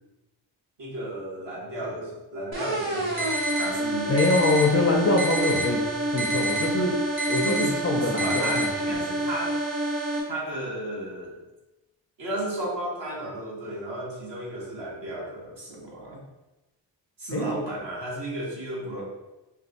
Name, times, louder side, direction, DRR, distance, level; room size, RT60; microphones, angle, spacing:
voice 1, 0.8-4.2 7.4-9.6 10.2-11.3 12.2-16.2 17.2-19.0, right 1 dB, 65° right, -4 dB, 1.5 m, -33 dB
sound 1, 2.5-10.2, right 1 dB, 80° right, 1.1 m, -28 dB
sound 2, 3.2-3.7 4.2-4.7 5.2-5.7 6.2-6.7 7.2-7.6 8.2-8.6, right 1 dB, 30° right, 0.7 m, -28 dB
voice 2, 4.1-5.8 6.1-7.0 7.3-9.0 17.3-17.4, left 2 dB, 30° left, 1 dB, 0.4 m, -24 dB
4.4 x 2.3 x 3.9 m, 1.0 s
wide cardioid pair, 160°, 45 cm